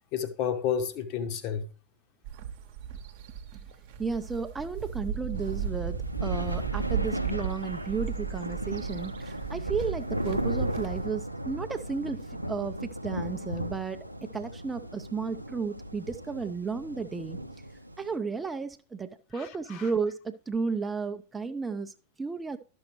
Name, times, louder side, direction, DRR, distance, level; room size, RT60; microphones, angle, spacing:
voice 1, 0.1-1.6 19.3-19.9, left 8 dB, 45° left, 1.0 m, -31 dB
sound 1, 2.2-11.1, right 7 dB, 50° right, 0.9 m, -36 dB
voice 2, 4.0-17.4 18.0-22.6, right 5 dB, 15° right, 0.5 m, -33 dB
sound 2, 5.3-18.1, equal, 90° right, 0.5 m, -36 dB
12.0 x 6.3 x 3.0 m
figure-of-eight pair, 90°, 0 cm